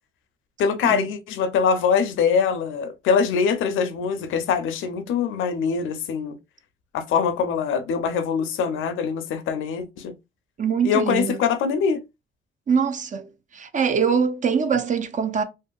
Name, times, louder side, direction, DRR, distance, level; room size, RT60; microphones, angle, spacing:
voice 1, 0.6-6.4 6.9-10.1 10.8-12.0, left 6 dB, 85° left, 0.5 m, -23 dB
voice 2, 10.6-11.4 12.7-15.4, right 6 dB, 40° right, 0.5 m, -23 dB
2.6 x 2.5 x 2.3 m
cardioid pair, 90°, 20 cm